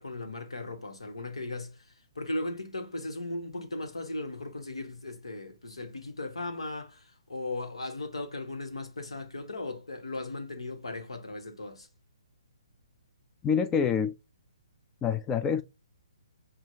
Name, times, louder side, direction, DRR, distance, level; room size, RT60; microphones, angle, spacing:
voice 1, 0.0-11.9, left 2 dB, 85° left, 1.2 m, -37 dB
voice 2, 13.4-14.1 15.0-15.6, left 7 dB, 15° left, 0.3 m, -26 dB
5.9 x 2.4 x 2.7 m
figure-of-eight pair, 135°, 3 cm